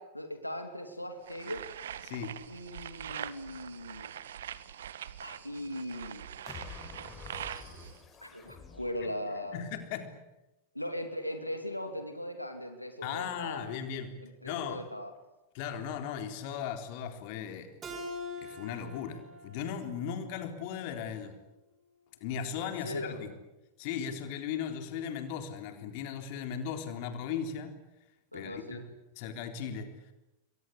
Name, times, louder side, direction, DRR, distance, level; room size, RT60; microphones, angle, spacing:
voice 1, 0.0-1.7 2.5-4.1 5.2-6.3 8.2-9.6 10.7-13.8 14.2-15.1 22.6-23.3 28.3-28.8, left 1 dB, 90° left, 6 dB, 2.8 m, -39 dB
sound 1, 1.3-8.0, right 10 dB, 60° right, 1.4 m, -43 dB
sound 2, 6.5-9.8, left 5 dB, 20° left, 5.7 m, -49 dB
voice 2, 9.5-10.2 13.0-14.1 14.4-14.9 15.5-17.8 18.4-21.4 22.2-23.3 23.8-27.8 28.3-28.8 29.2-30.1, left 8 dB, 45° left, 7 dB, 3.7 m, -37 dB
Keyboard (musical), 17.8-21.1, left 2 dB, 25° right, 6.3 m, -44 dB
28.5 x 23.5 x 8.4 m, 0.97 s
figure-of-eight pair, 90°, 0 cm